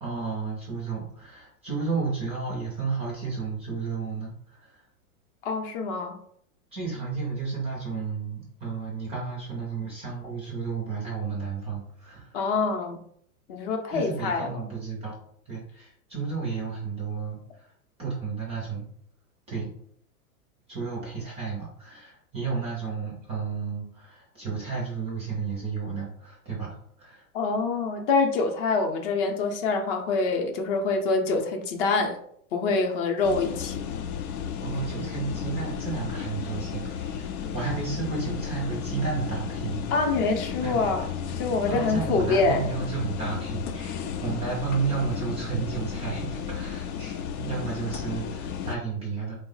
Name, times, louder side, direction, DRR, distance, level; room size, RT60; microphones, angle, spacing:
voice 1, 0.0-4.8 6.7-12.4 13.9-15.2 15.5-17.7 18.0-18.9 19.5-19.7 20.7-27.2 34.6-40.2 40.6-40.9 41.7-49.4, right 5 dB, 15° right, -3 dB, 0.4 m, -32 dB
voice 2, 5.4-6.2 12.3-13.0 13.5-14.7 27.3-32.2 32.5-33.9 39.9-41.1 41.4-42.7, left 3 dB, 40° left, 4 dB, 0.6 m, -25 dB
sound 1, 33.2-48.8, left 7 dB, 85° left, 0.6 m, -33 dB
3.0 x 2.0 x 3.8 m, 0.65 s
hypercardioid pair, 135°, 43 cm